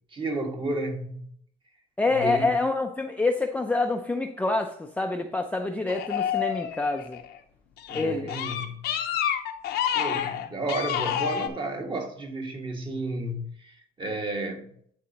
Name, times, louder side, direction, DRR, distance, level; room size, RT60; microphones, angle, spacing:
voice 1, 0.1-1.3 2.1-2.5 7.9-8.9 9.9-14.7, right 1 dB, 30° right, 1.4 m, -32 dB
voice 2, 2.0-7.2 7.9-8.3, left 3 dB, 10° left, 0.5 m, -27 dB
sound 1, 5.9-7.3 7.8-11.5, left 10 dB, 80° left, 0.8 m, -28 dB
11.5 x 4.1 x 2.9 m
cardioid pair, 110°, 17 cm